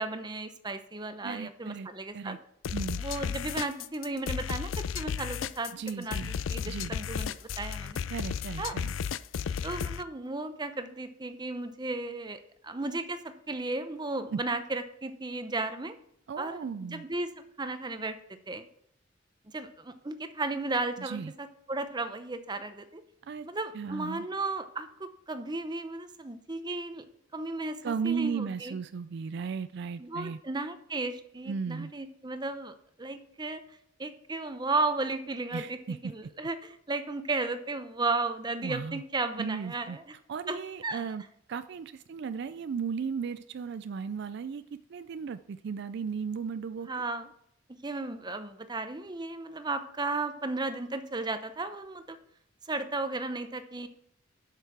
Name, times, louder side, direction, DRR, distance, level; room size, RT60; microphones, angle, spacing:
voice 1, 0.0-2.4 3.0-8.0 8.6-8.7 9.6-16.0 16.4-18.2 18.5-18.7 19.5-23.0 23.4-27.1 27.3-28.7 30.0-33.6 34.0-40.0 40.5-41.0 46.9-47.3 47.8-52.2 52.6-53.9, right 3 dB, 20° right, 9 dB, 0.8 m, -34 dB
voice 2, 1.2-1.9 2.1-2.4 2.7-3.0 5.7-6.3 6.6-6.9 8.1-8.9 14.3-14.4 16.3-17.0 21.0-21.3 23.2-23.5 23.7-24.3 27.8-30.4 31.5-31.9 35.5-36.0 38.6-39.0 39.4-40.0 40.3-41.2 41.5-46.9, right 6 dB, 60° right, 12 dB, 0.4 m, -35 dB
sound 1, 2.6-10.0, left 7 dB, 85° left, 0.4 m, -33 dB
8.0 x 6.7 x 5.9 m, 0.70 s
head